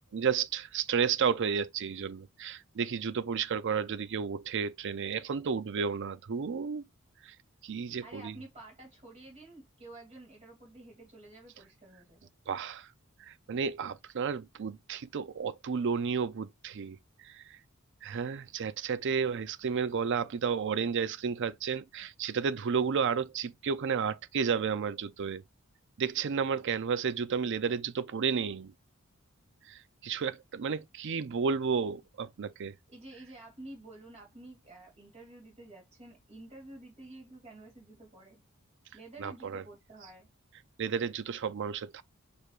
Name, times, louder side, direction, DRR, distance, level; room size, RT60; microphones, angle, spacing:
voice 1, 0.0-6.9 7.2-7.3 7.6-8.4 12.5-12.9 13.3-17.0 17.2-17.6 18.0-25.4 26.0-28.7 29.7-32.7 39.2-39.6 40.8-42.0, right 6 dB, 60° right, 0.5 m, -32 dB
voice 2, 8.0-12.3 32.9-38.4 38.9-40.3, right 2 dB, 30° right, 2.6 m, -50 dB
6.3 x 3.4 x 2.5 m
head